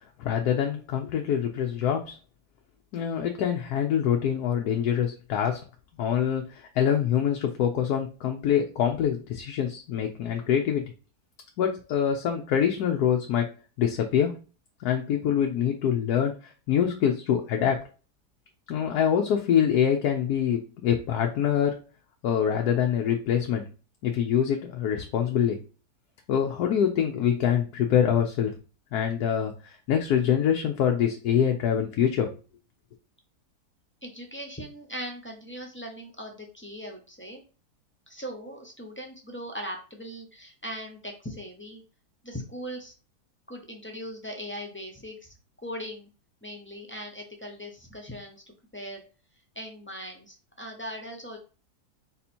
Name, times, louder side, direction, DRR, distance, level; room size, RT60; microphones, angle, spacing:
voice 1, 0.2-2.2 2.9-5.6 6.0-10.8 11.6-13.5 13.8-14.4 14.8-16.3 16.7-17.9 18.7-21.8 22.2-23.6 24.0-25.6 26.3-28.5 28.9-32.3, left 9 dB, 75° left, 3 dB, 1.1 m, -25 dB
voice 2, 34.0-37.4 38.1-41.8 42.2-42.9 43.5-45.3 45.6-46.1 46.4-48.4 48.7-49.0 49.5-51.4, equal, 15° left, 2 dB, 0.4 m, -39 dB
4.1 x 2.8 x 4.3 m, 0.35 s
omnidirectional pair, 1.7 m